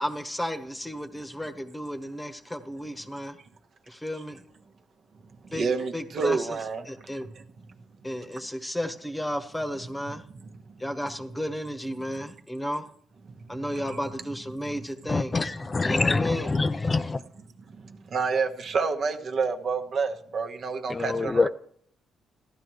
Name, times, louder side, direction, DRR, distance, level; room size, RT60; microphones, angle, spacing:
voice 1, 0.0-3.4 3.9-4.4 5.5-5.7 5.9-6.6 6.9-7.3 8.0-10.2 10.8-12.8 13.5-15.5 15.8-16.5, equal, 10° left, 1.2 m, -33 dB
voice 2, 5.5-6.8 7.1-7.4 10.1-10.5 12.2-12.3 13.3-14.0 15.1-15.2 17.0-17.2 17.7-21.5, right 5 dB, 55° right, 1.2 m, -30 dB
voice 3, 15.1-17.2 20.9-21.5, left 3 dB, 25° left, 0.4 m, -25 dB
15.0 x 11.0 x 3.1 m
cardioid pair, 90°, 0 cm